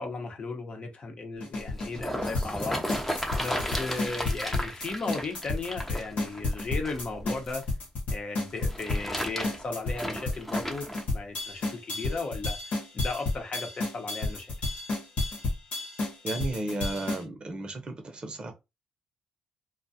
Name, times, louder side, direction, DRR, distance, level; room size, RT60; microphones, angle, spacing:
voice 1, 0.0-2.8 3.4-7.6 8.1-14.5, left 3 dB, 45° left, 0.9 m, -36 dB
sound 1, 1.4-17.2, left 2 dB, 70° left, 1.1 m, -31 dB
sound 2, 1.5-7.6 8.5-11.0 11.7-11.8, equal, 10° left, 0.7 m, -34 dB
voice 2, 16.2-18.5, right 2 dB, 40° right, 0.7 m, -34 dB
2.3 x 2.2 x 2.7 m
supercardioid pair, 60°, 3 cm